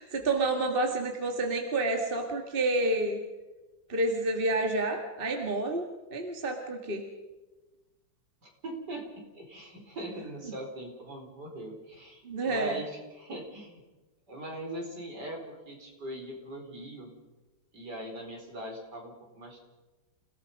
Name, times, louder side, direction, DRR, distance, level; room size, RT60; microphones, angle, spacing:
voice 1, 0.0-3.2 3.9-7.0 12.2-12.8, right 2 dB, 30° right, 3 dB, 2.1 m, -29 dB
voice 2, 8.4-9.1 9.3-13.8 14.3-17.1 17.7-19.6, right 1 dB, 60° right, 1 dB, 4.9 m, -41 dB
29.0 x 17.0 x 5.4 m, 1.1 s
omnidirectional pair, 2.0 m